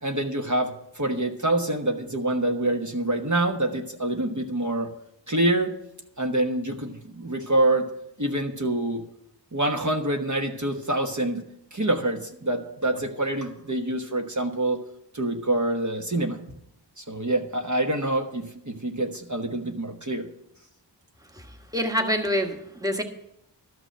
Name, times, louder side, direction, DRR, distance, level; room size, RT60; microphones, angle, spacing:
voice 1, 0.0-4.9 5.3-5.7 6.2-7.9 8.2-9.0 9.5-11.4 11.7-14.8 15.1-16.4 17.0-20.3, right 1 dB, 40° right, 2 dB, 1.2 m, -26 dB
voice 2, 21.7-23.0, equal, 10° right, 4 dB, 1.3 m, -25 dB
12.5 x 6.0 x 7.7 m, 0.78 s
wide cardioid pair, 45°, 44 cm